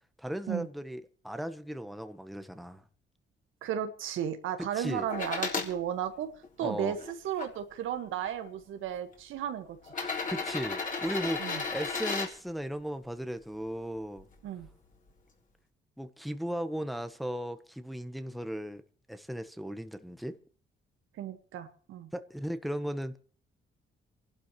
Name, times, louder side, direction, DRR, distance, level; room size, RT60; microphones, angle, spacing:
voice 1, 0.2-2.8 4.7-5.1 6.6-7.0 10.0-14.3 16.0-18.8 19.1-20.4 22.1-23.2, equal, ahead, 1.1 m, -36 dB
voice 2, 3.6-6.3 6.6-9.9 11.4-11.6 14.4-14.7 21.2-22.1, right 9 dB, 85° right, 1.7 m, -34 dB
sound 1, 5.1-5.7 6.4-7.5 8.5-8.6 9.8-12.3 14.2-14.3, left 4 dB, 40° left, 3.9 m, -34 dB
28.0 x 12.0 x 3.2 m
cardioid pair, 90°, 20 cm